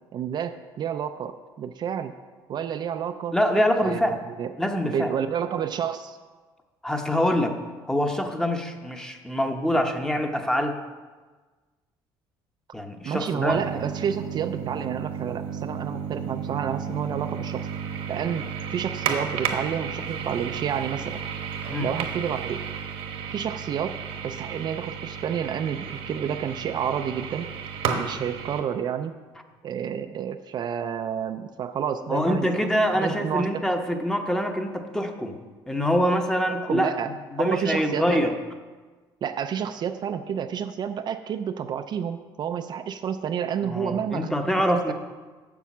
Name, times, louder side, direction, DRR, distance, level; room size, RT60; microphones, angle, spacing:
voice 1, 0.1-2.1 2.5-3.3 3.8-4.5 4.8-6.2 13.0-17.7 18.1-18.5 18.7-21.2 21.8-22.6 23.3-27.5 27.9-29.1 29.6-32.5 32.9-33.6 36.5-37.1 37.4-38.3 39.2-44.4 44.7-44.9, right 8 dB, 50° right, 7 dB, 0.5 m, -30 dB
voice 2, 3.3-4.2 4.6-5.1 6.8-7.5 7.9-10.8 12.7-13.6 21.7-21.9 32.1-35.4 35.7-36.9 37.3-38.3 43.6-44.9, equal, 5° left, 4 dB, 0.9 m, -25 dB
sound 1, 13.5-28.6, right 7 dB, 70° right, 1.1 m, -33 dB
7.1 x 6.9 x 6.0 m, 1.4 s
cardioid pair, 100°, 10 cm